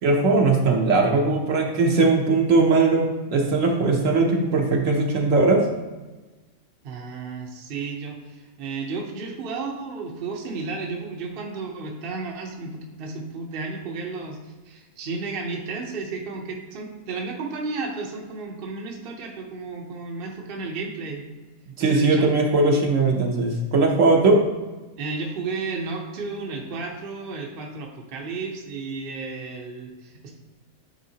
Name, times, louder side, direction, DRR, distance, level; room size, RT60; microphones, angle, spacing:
voice 1, 0.0-5.6 21.8-24.4, right 3 dB, 65° right, 1 dB, 1.1 m, -19 dB
voice 2, 6.8-21.2 21.8-22.3 25.0-30.4, right 4 dB, 45° right, 1 dB, 0.9 m, -33 dB
9.2 x 3.6 x 2.8 m, 1.2 s
omnidirectional pair, 1.5 m